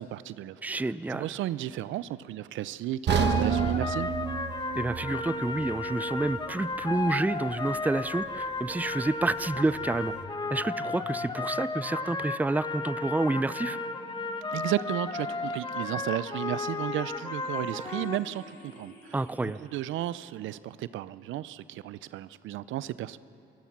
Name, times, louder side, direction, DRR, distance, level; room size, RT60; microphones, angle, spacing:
voice 1, 0.0-4.1 14.5-23.2, right 13 dB, 75° right, 17 dB, 0.6 m, -34 dB
voice 2, 0.6-1.3 4.8-10.1 10.5-13.8 19.1-19.6, right 2 dB, 10° right, 16 dB, 0.5 m, -29 dB
sound 1, 3.1-18.2, left 3 dB, 20° left, 1.2 m, -34 dB
sound 2, 3.1-7.1 7.5-7.6 8.2-8.3, right 7 dB, 60° right, 1.2 m, -30 dB
sound 3, 9.5-19.5, left 2 dB, 70° left, 4.1 m, -50 dB
27.5 x 16.0 x 6.0 m, 2.6 s
supercardioid pair, 65°, 20 cm